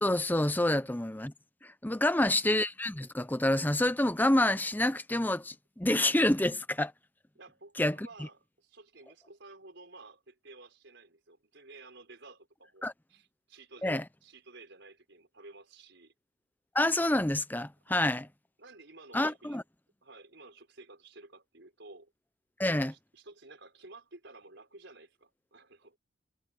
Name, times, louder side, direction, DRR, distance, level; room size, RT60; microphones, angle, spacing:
voice 1, 0.0-1.3 1.6-6.9 7.8-8.1 12.8-12.9 13.8-14.0 16.7-18.2 19.1-19.6 22.6-22.9, left 1 dB, 10° left, 0.7 m, -28 dB
voice 2, 7.3-16.1 17.9-18.2 18.6-19.6 20.0-22.1 22.7-26.0, right 3 dB, 60° right, 5.8 m, -53 dB
head